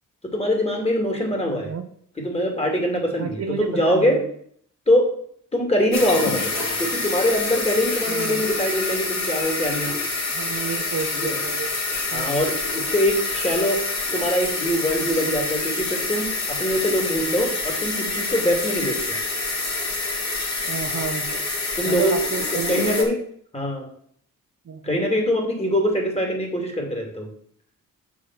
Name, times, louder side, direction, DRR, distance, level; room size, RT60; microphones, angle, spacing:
voice 1, 0.3-1.7 2.2-4.2 4.9-5.1 5.5-6.5 6.8-10.0 11.2-11.4 12.1-13.8 14.1-19.0 21.8-22.1 22.5-23.2 23.5-23.9 24.8-27.3, equal, 20° left, 1 dB, 2.5 m, -23 dB
voice 2, 1.5-1.8 3.2-4.3 8.1-8.4 10.3-11.7 12.1-12.3 20.7-21.5 21.8-23.1 24.7-25.1, right 6 dB, 50° right, 6 dB, 0.9 m, -31 dB
sound 1, 5.9-23.0, left 3 dB, 55° left, 2.6 m, -27 dB
7.0 x 4.9 x 6.1 m, 0.62 s
cardioid pair, 100°, 33 cm